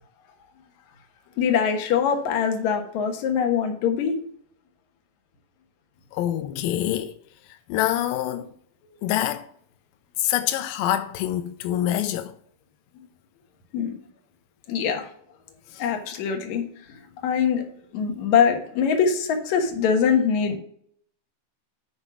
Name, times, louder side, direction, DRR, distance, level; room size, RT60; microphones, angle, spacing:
voice 1, 1.4-4.2 13.7-14.0 14.7-15.1 15.8-16.7 17.2-17.6 17.9-20.6, left 7 dB, 65° left, 2.5 m, -23 dB
voice 2, 6.1-7.1 7.7-8.5 9.0-9.5 10.2-12.3 15.7-15.8, left 12 dB, 85° left, 2.3 m, -25 dB
10.0 x 4.4 x 6.1 m
omnidirectional pair, 3.9 m